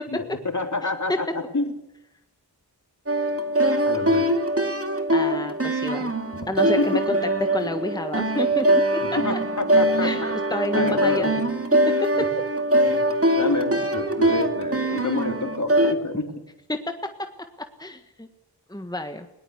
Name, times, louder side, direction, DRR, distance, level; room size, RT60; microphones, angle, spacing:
voice 1, 0.1-1.7 3.8-4.3 6.8-7.0 9.0-10.3 10.7-11.3 12.1-12.3 12.8-13.0 13.3-16.3, left 3 dB, 45° left, 6 dB, 3.4 m, -28 dB
sound 1, 3.1-15.9, right 1 dB, 35° right, 2.5 m, -22 dB
voice 2, 5.1-6.1 6.5-6.9 7.5-9.0 9.3-9.4 10.0-11.3 11.9-12.1 12.9-13.0 16.7-17.0 17.6-18.3 18.7-19.3, left 1 dB, 10° left, 7 dB, 1.6 m, -30 dB
21.0 x 19.0 x 8.2 m, 0.89 s
wide cardioid pair, 55°, 40 cm